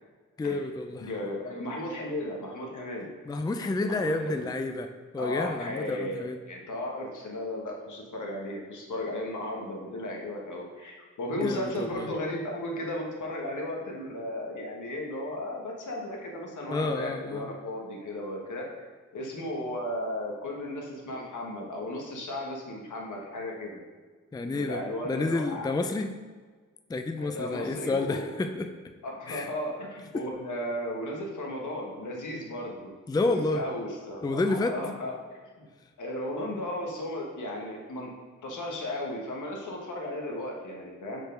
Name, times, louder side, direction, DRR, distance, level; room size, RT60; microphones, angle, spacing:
voice 1, 0.4-1.1 3.3-6.4 11.4-12.1 16.7-17.5 24.3-26.1 26.9-28.7 29.3-29.5 30.1-30.2 33.1-33.6 34.2-34.8, left 3 dB, 15° left, 7 dB, 0.4 m, -30 dB
voice 2, 1.0-3.1 3.9-4.5 5.2-18.7 19.1-23.8 24.5-25.7 27.2-28.2 29.0-35.7 36.0-38.1 38.4-41.2, left 1 dB, 75° left, -1 dB, 1.3 m, -35 dB
4.8 x 4.4 x 5.1 m, 1.4 s
cardioid pair, 55°, 31 cm